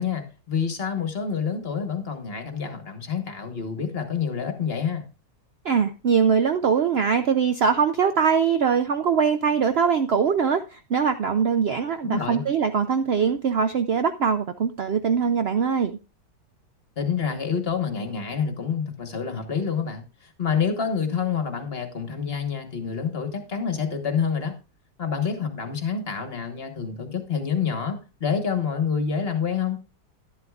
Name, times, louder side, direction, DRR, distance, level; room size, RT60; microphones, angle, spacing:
voice 1, 0.0-5.0 12.0-12.4 17.0-24.5 25.0-29.8, left 6 dB, 40° left, 7 dB, 1.4 m, -27 dB
voice 2, 5.6-16.0, right 6 dB, 80° right, 9 dB, 0.5 m, -22 dB
11.5 x 11.5 x 2.4 m, 0.31 s
omnidirectional pair, 1.8 m